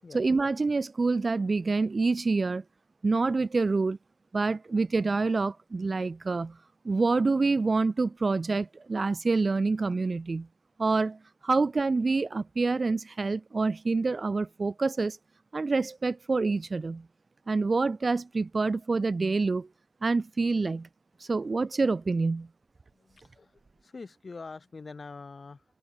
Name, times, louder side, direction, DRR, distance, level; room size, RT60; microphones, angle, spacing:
voice 1, 0.1-2.6 3.0-4.0 4.3-6.6 6.8-10.5 10.8-15.2 15.5-17.0 17.5-19.7 20.0-20.9 21.2-22.5, right 3 dB, 35° right, 0.7 m, -27 dB
voice 2, 22.9-25.6, left 4 dB, 35° left, 6.6 m, -45 dB
open air
hypercardioid pair, 45°, 0 cm